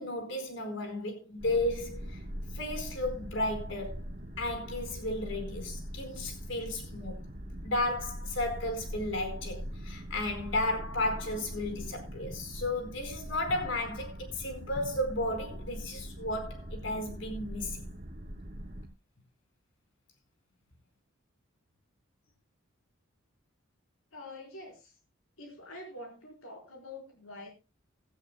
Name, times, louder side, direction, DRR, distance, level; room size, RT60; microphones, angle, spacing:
voice 1, 0.0-2.2 2.5-4.0 4.4-7.2 7.6-17.8, left 1 dB, 65° left, 4.5 m, -34 dB
sound 1, 1.4-18.9, equal, 40° right, 2.6 m, -42 dB
voice 2, 24.1-24.8 25.4-27.5, left 2 dB, 85° left, 4.4 m, -46 dB
16.5 x 13.5 x 2.3 m
head